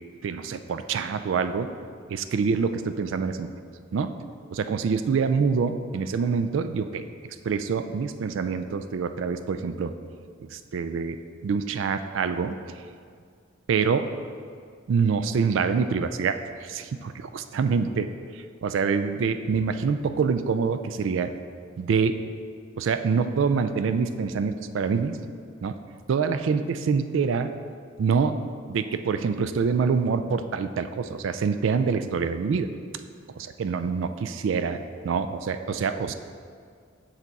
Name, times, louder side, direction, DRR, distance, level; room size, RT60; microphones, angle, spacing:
voice 1, 0.2-1.7 2.1-3.5 3.9-4.1 4.5-7.0 7.4-9.9 10.5-11.2 11.4-12.5 13.7-14.1 14.9-18.1 18.3-21.3 21.8-22.2 22.8-25.2 25.6-25.7 26.1-27.5 28.0-28.3 28.7-32.7 33.6-36.1, right 5 dB, 65° right, 10 dB, 0.3 m, -26 dB
6.7 x 5.9 x 4.1 m, 2.1 s
head